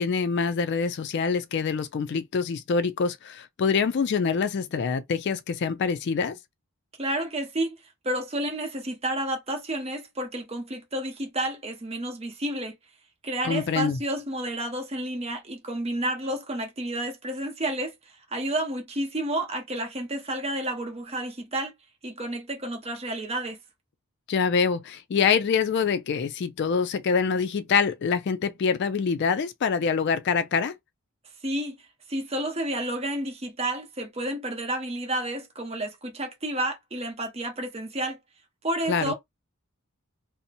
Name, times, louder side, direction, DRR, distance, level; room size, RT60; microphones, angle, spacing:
voice 1, 0.0-6.4 13.4-14.0 24.3-30.7 38.9-39.1, left 5 dB, 50° left, 0.3 m, -25 dB
voice 2, 7.0-7.7 8.0-12.8 13.2-21.7 22.0-23.6 31.4-31.8 32.1-38.2 38.6-39.1, right 1 dB, 30° right, 0.8 m, -30 dB
2.7 x 2.0 x 2.5 m
head